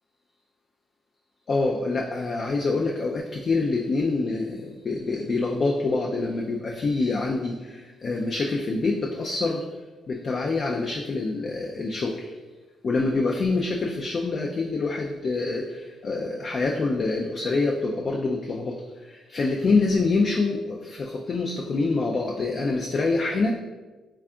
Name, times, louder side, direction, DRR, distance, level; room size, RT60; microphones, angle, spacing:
voice 1, 1.5-9.6 10.1-12.3 12.8-23.5, left 3 dB, 45° left, 0 dB, 0.3 m, -26 dB
3.4 x 2.3 x 3.6 m, 1.2 s
cardioid pair, 90°, 0 cm